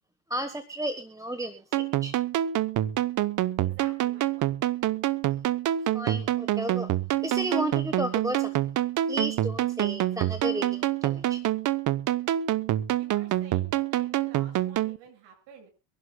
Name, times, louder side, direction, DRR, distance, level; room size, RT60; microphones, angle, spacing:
voice 1, 0.3-2.1 5.9-6.9 7.2-8.6 9.1-11.4, right 1 dB, 5° right, 10 dB, 1.2 m, -33 dB
sound 1, 1.7-15.0, right 13 dB, 40° right, 0.8 m, -27 dB
voice 2, 3.6-4.6 12.9-15.7, right 5 dB, 65° right, 1 dB, 7.7 m, -51 dB
24.0 x 12.0 x 2.3 m, 0.29 s
supercardioid pair, 110°, 46 cm